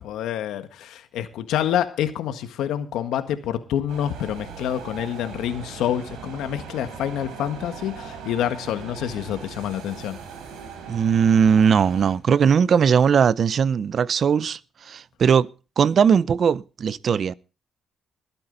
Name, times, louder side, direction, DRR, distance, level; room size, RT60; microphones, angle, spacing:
voice 1, 0.0-10.2, left 10 dB, 85° left, 1.6 m, -27 dB
sound 1, 3.9-12.1, right 6 dB, 90° right, 4.2 m, -39 dB
voice 2, 10.9-15.5 15.8-17.3, right 7 dB, 55° right, 0.5 m, -19 dB
21.0 x 8.9 x 3.9 m
cardioid pair, 90°, 0 cm